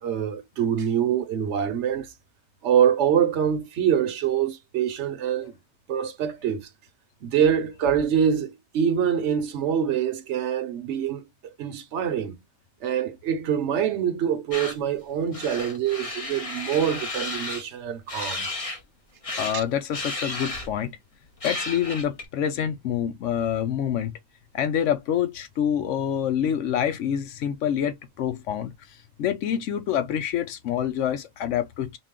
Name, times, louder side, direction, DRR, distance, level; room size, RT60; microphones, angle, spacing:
voice 1, 0.0-2.1 2.6-5.6 5.9-6.7 7.2-11.2 11.6-12.4 12.8-18.5 19.5-19.6, right 8 dB, 70° right, 1.1 m, -25 dB
sound 1, 14.5-14.7 15.3-17.6 18.1-18.8 19.2-19.6 19.9-20.8 21.4-22.2, left 2 dB, 30° left, 1.0 m, -33 dB
voice 2, 19.4-21.0 21.4-24.1 24.5-28.7 29.2-32.0, left 9 dB, 85° left, 1.0 m, -26 dB
4.0 x 2.3 x 3.6 m
omnidirectional pair, 1.2 m